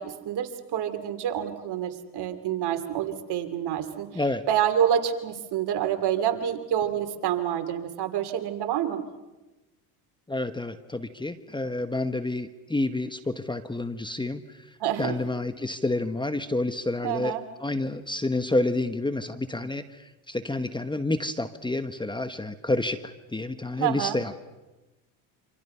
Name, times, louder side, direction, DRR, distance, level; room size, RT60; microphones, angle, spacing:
voice 1, 0.0-4.1 4.5-9.0 14.8-15.1 17.0-17.4 23.8-24.2, right 10 dB, 60° right, 8 dB, 2.8 m, -27 dB
voice 2, 4.1-4.4 10.3-14.4 15.0-17.3 17.6-20.0 20.3-24.4, left 2 dB, 10° left, 10 dB, 1.2 m, -29 dB
27.5 x 26.0 x 5.7 m, 1.1 s
supercardioid pair, 85°, 45 cm